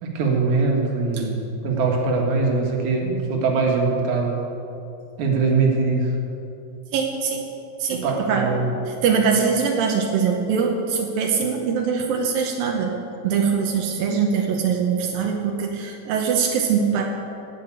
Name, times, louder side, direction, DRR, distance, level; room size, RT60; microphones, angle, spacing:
voice 1, 0.0-4.4 5.2-6.1 7.9-8.7, right 4 dB, 55° right, 0 dB, 2.4 m, -22 dB
voice 2, 6.9-7.5 7.8-8.5 8.9-12.9 13.2-17.0, right 6 dB, 85° right, 1 dB, 2.0 m, -22 dB
17.0 x 5.8 x 8.5 m, 2.7 s
omnidirectional pair, 5.5 m